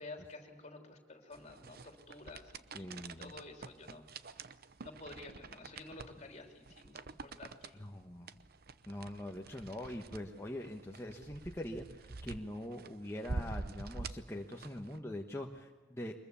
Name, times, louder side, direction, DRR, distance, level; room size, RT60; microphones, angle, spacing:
voice 1, 0.0-2.9 3.2-4.3 4.8-7.8, left 2 dB, 40° left, 3 dB, 3.2 m, -51 dB
sound 1, 1.3-15.0, right 3 dB, 55° right, 0.8 m, -47 dB
voice 2, 2.7-3.3 7.8-8.3 8.9-16.2, left 1 dB, 15° left, 0 dB, 1.2 m, -43 dB
23.5 x 22.0 x 7.1 m, 1.4 s
head